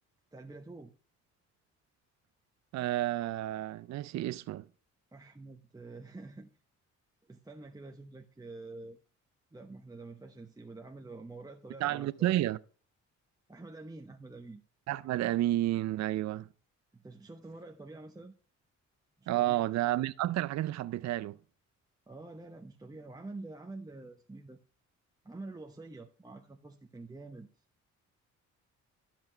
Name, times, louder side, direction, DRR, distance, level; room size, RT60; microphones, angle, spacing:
voice 1, 0.3-0.9 5.1-6.5 7.3-9.0 9.5-12.3 13.5-14.6 16.9-18.3 19.2-19.6 22.1-24.6 25.2-27.5, right 2 dB, 10° right, 0.9 m, -47 dB
voice 2, 2.7-4.7 11.8-12.6 14.9-16.5 19.3-21.4, right 14 dB, 65° right, 0.5 m, -31 dB
12.5 x 5.9 x 4.4 m
cardioid pair, 90°, 30 cm